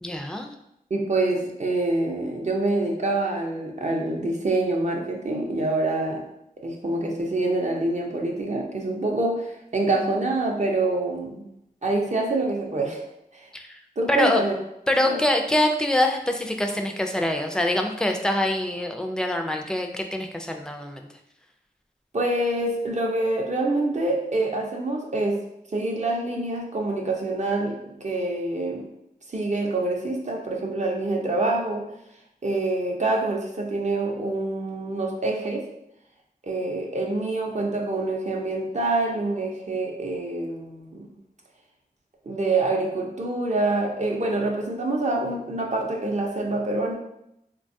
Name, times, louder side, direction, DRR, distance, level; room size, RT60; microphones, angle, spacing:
voice 1, 0.0-0.5 13.5-13.8 14.1-14.4 14.9-21.1, left 1 dB, 5° left, 3 dB, 0.3 m, -24 dB
voice 2, 0.9-6.2 6.6-11.4 11.8-13.0 13.3-13.5 14.0-14.5 15.0-15.2 22.1-25.4 25.7-28.9 29.3-31.9 32.4-35.6 36.4-41.1 42.3-46.9, right 2 dB, 50° right, 0 dB, 0.6 m, -26 dB
3.3 x 2.2 x 2.6 m, 0.82 s
wide cardioid pair, 65°, 16 cm